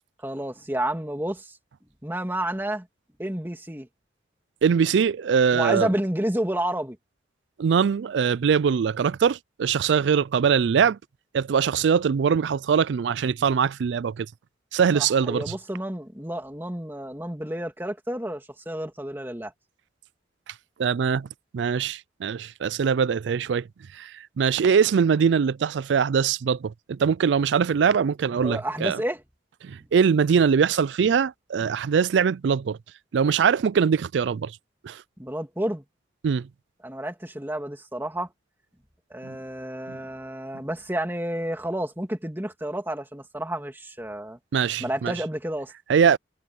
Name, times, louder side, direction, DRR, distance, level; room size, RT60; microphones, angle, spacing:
voice 1, 0.2-1.6 2.0-2.9 3.2-3.9 5.5-7.0 14.9-19.5 28.4-29.2 35.2-35.8 36.8-38.3 39.1-44.4 44.8-45.7, right 1 dB, 10° right, 2.8 m, -30 dB
voice 2, 4.6-5.9 7.6-11.0 11.3-14.3 14.7-15.4 20.8-21.3 21.5-23.7 23.9-29.0 29.6-32.8 33.1-34.6 34.8-35.0 36.2-36.5 39.3-39.4 39.9-40.0 44.5-45.1 45.9-46.2, right 6 dB, 75° right, 0.4 m, -22 dB
head